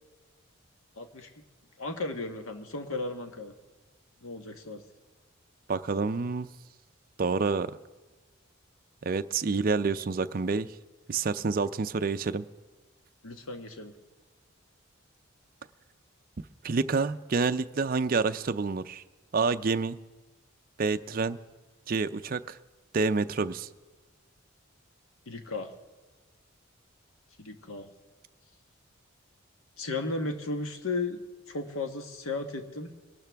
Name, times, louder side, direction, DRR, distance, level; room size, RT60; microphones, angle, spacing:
voice 1, 1.0-1.3 1.8-3.5 4.2-4.8 13.2-13.9 25.3-25.7 27.4-27.9 29.8-31.2 31.5-32.9, left 3 dB, 85° left, 6 dB, 1.3 m, -35 dB
voice 2, 5.7-6.5 7.2-7.7 9.0-10.7 11.1-12.4 16.6-19.0 19.3-20.0 20.8-21.4 21.9-22.6 22.9-23.7, right 4 dB, 45° right, 10 dB, 0.4 m, -28 dB
23.0 x 12.5 x 3.5 m, 1.2 s
head